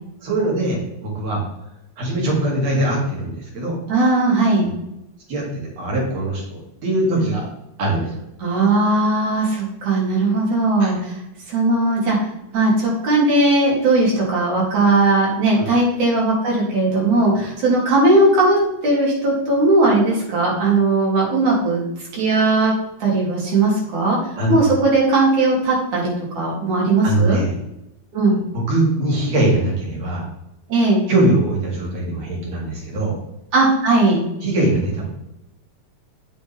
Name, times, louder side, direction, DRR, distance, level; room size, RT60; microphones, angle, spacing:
voice 1, 0.2-1.4 2.0-3.8 5.3-5.5 5.8-7.5 7.8-8.1 10.8-10.9 15.6-15.7 24.4-24.5 27.0-27.6 28.5-30.2 31.1-33.1 34.4-35.1, right 1 dB, 60° right, -2 dB, 3.8 m, -21 dB
voice 2, 3.9-4.7 8.4-11.2 11.5-12.2 12.5-21.8 22.1-22.7 23.0-27.4 28.1-28.4 30.7-31.0 33.5-34.2, right 2 dB, 85° right, -4 dB, 4.5 m, -18 dB
8.8 x 7.3 x 3.6 m, 0.89 s
omnidirectional pair, 3.3 m